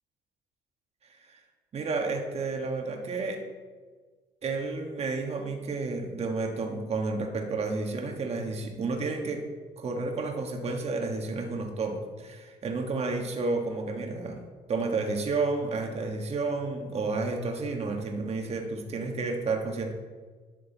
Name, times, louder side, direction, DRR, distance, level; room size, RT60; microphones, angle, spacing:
voice 1, 1.7-3.4 4.4-9.4 9.8-14.4 14.7-19.9, right 3 dB, 40° right, 3 dB, 1.4 m, -31 dB
11.5 x 6.5 x 3.9 m, 1.4 s
cardioid pair, 110°, 17 cm